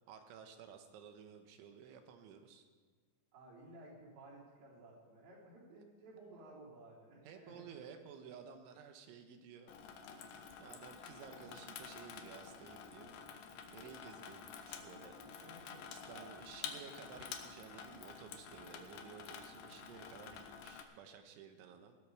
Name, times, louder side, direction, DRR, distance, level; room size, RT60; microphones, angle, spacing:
voice 1, 0.1-2.7 7.2-9.7 10.6-13.2 13.7-15.2 15.9-22.0, right 7 dB, 80° right, 6 dB, 3.5 m, -54 dB
voice 2, 3.3-7.7 15.2-15.8 16.1-16.3 16.6-16.7, right 2 dB, 65° right, -6 dB, 6.0 m, -56 dB
Water tap faucet / Sink (filling or washing), 9.7-20.8, left 7 dB, 85° left, 1.9 m, -50 dB
18.5 x 13.0 x 4.9 m, 1.5 s
omnidirectional pair, 5.5 m